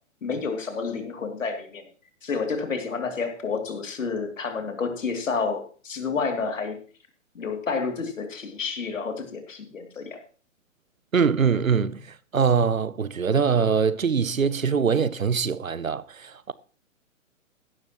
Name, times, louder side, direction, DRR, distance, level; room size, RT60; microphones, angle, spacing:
voice 1, 0.2-1.8 2.2-6.8 7.3-10.2, left 5 dB, 70° left, 2.8 m, -30 dB
voice 2, 11.1-16.5, right 6 dB, 90° right, 0.8 m, -23 dB
16.0 x 12.0 x 3.0 m
figure-of-eight pair, 120°, 40 cm